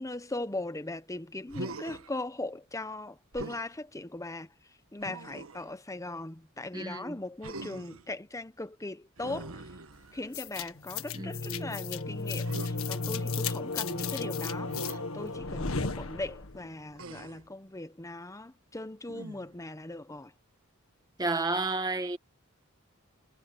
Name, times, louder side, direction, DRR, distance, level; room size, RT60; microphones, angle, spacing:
voice 1, 0.0-4.5 4.9-9.7 10.1-20.3, left 2 dB, 15° left, 0.9 m, -39 dB
Human voice, 1.5-2.1 3.3-3.7 5.0-5.7 7.4-8.1 9.2-10.4 12.4-12.7 14.7-15.0 17.0-17.5 19.1-19.6, right 2 dB, 85° right, 1.4 m, -43 dB
voice 2, 6.7-7.2 11.1-11.7 21.2-22.2, right 3 dB, 20° right, 1.4 m, -32 dB
sound 1, 10.3-16.7, left 4 dB, 90° left, 1.7 m, -34 dB
head